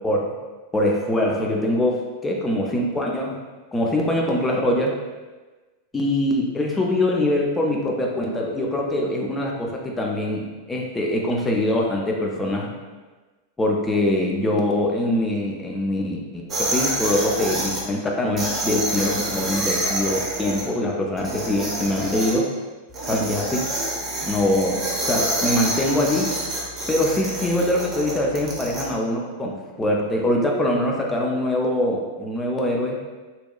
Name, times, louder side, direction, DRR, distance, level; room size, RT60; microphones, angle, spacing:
voice 1, 0.0-0.4 0.7-3.4 3.7-5.0 5.9-12.7 13.6-22.5 23.1-23.7 24.2-26.3 26.9-33.0, left 1 dB, 15° left, -1 dB, 0.4 m, -23 dB
sound 1, 16.5-17.8 18.4-20.6 21.2-22.3 22.9-28.8, right 1 dB, 20° right, 0.6 m, -27 dB
2.8 x 2.1 x 2.2 m, 1.3 s
figure-of-eight pair, 90°, 0 cm